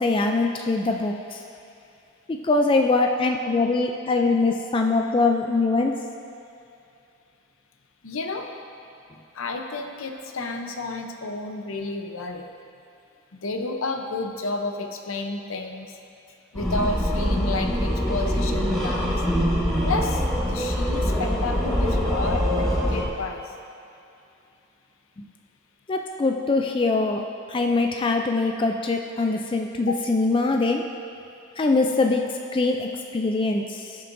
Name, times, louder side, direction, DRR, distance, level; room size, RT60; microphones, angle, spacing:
voice 1, 0.0-1.4 2.3-6.0 25.9-30.9 31.6-34.0, left 3 dB, 25° left, 3 dB, 0.3 m, -23 dB
voice 2, 8.0-8.5 9.3-12.5 13.3-16.0 16.5-19.2 19.8-20.2 20.5-23.5 29.9-30.0, left 3 dB, 80° left, 4 dB, 0.7 m, -31 dB
sound 1, 16.5-23.0, equal, ahead, 1.5 m, -24 dB
16.0 x 6.7 x 2.6 m, 2.6 s
head